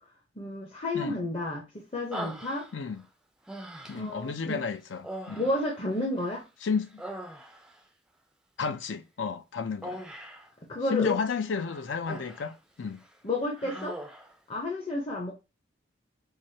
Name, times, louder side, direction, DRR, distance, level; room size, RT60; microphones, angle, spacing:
voice 1, 0.4-2.7 3.9-4.6 5.4-6.4 10.7-11.2 13.2-14.0 14.5-15.3, left 2 dB, 30° left, 0.7 m, -31 dB
Human voice, 2.1-3.0 3.5-4.2 5.0-6.4 6.8-7.8 9.8-10.5 11.5-12.6 12.9-13.1 13.6-14.4, right 1 dB, 5° right, 0.3 m, -41 dB
voice 2, 2.7-3.0 3.9-5.5 6.6-7.0 8.6-10.0 10.9-13.0, left 5 dB, 80° left, 0.5 m, -32 dB
4.7 x 2.0 x 2.7 m
head